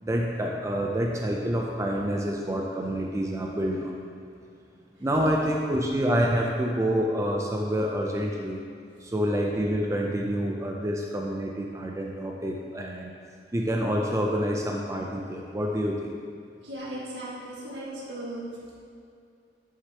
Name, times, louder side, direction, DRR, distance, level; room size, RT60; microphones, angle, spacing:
voice 1, 0.0-4.0 5.0-8.6 9.0-13.1 13.5-16.2, equal, 15° right, 0 dB, 0.4 m, -27 dB
voice 2, 16.6-18.4, right 1 dB, 80° right, -5 dB, 1.6 m, -37 dB
9.2 x 6.4 x 2.9 m, 2.4 s
head